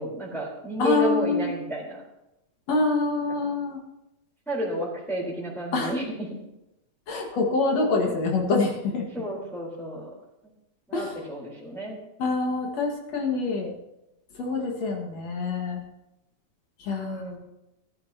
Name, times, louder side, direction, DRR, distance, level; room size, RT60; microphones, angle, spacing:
voice 1, 0.0-2.0 4.5-6.3 9.1-10.1 10.9-12.0 16.9-17.4, equal, ahead, -7 dB, 3.5 m, -31 dB
voice 2, 0.8-1.5 2.7-3.8 5.7-5.9 7.1-9.1 10.9-11.3 12.2-13.7 14.3-15.8 16.8-17.4, left 3 dB, 65° left, 0 dB, 2.8 m, -26 dB
19.0 x 12.0 x 2.9 m, 0.90 s
omnidirectional pair, 3.3 m